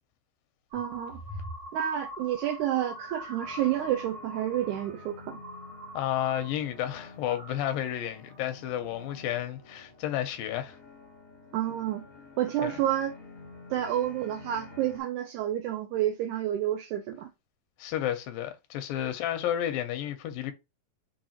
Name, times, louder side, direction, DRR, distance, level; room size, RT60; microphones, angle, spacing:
sound 1, 0.7-6.5 6.8-7.7 8.2-8.5, equal, 55° right, 1.6 m, -43 dB
voice 1, 0.7-1.2 1.7-5.4 11.5-12.0 12.4-13.1 13.7-17.3, right 11 dB, 80° right, 1.9 m, -29 dB
sound 2, 2.7-15.0, left 3 dB, 50° left, 0.8 m, -50 dB
voice 2, 5.9-10.8 12.6-12.7 17.8-20.5, left 11 dB, 85° left, 2.4 m, -31 dB
6.3 x 2.5 x 2.9 m
omnidirectional pair, 4.0 m